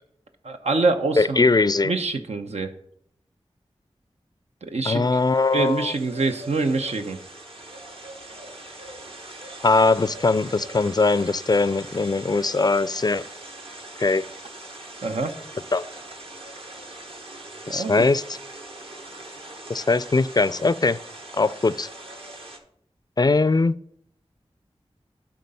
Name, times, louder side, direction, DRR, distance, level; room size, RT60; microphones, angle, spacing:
voice 1, 0.4-1.4 1.8-2.7 4.6-5.0 5.5-7.2 15.0-15.4 17.7-18.0, right 3 dB, 85° right, 5 dB, 0.8 m, -25 dB
voice 2, 1.2-1.9 4.9-5.9 9.6-13.3 14.0-14.3 15.7-15.8 17.7-18.4 19.7-21.0 21.4-21.9 23.2-23.8, left 3 dB, 40° left, 17 dB, 0.4 m, -21 dB
sound 1, 5.0-22.6, right 2 dB, 60° right, 1.3 m, -41 dB
11.0 x 3.9 x 5.5 m, 0.69 s
cardioid pair, 40°, 11 cm